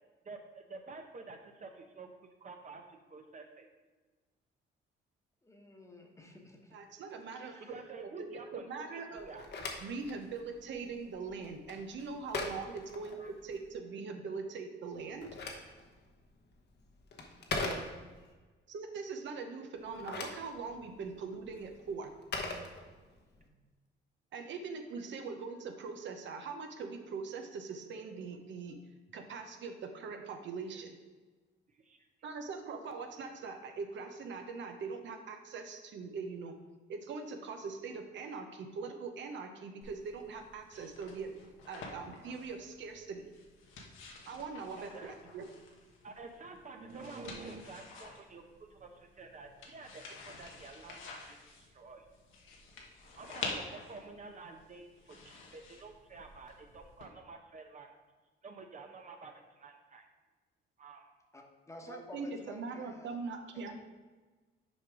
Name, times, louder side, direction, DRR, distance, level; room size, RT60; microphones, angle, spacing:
voice 1, 0.2-3.7 7.6-9.4 13.2-13.3 17.8-17.9 31.7-32.0 44.8-45.1 46.0-48.4 48.7-52.0 53.2-57.9 58.4-60.1 60.8-61.1, right 3 dB, 40° right, 4 dB, 0.8 m, -49 dB
voice 2, 5.4-6.8 7.4-7.8 23.4-23.6 61.3-63.2 63.5-63.7, left 1 dB, 15° left, 2 dB, 1.2 m, -52 dB
voice 3, 6.7-9.3 9.8-13.2 13.4-15.3 18.7-22.1 24.3-28.8 29.1-31.0 32.2-36.5 36.9-41.3 41.7-43.3 44.3-45.5 61.9-63.7, right 4 dB, 70° right, 5 dB, 0.9 m, -42 dB
Telephone, 9.2-13.7 14.9-18.3 19.8-23.4, left 3 dB, 60° left, 1.1 m, -42 dB
sound 1, 39.8-57.0, left 3 dB, 90° left, 1.2 m, -49 dB
6.4 x 4.9 x 4.8 m, 1.3 s
cardioid pair, 90°, 20 cm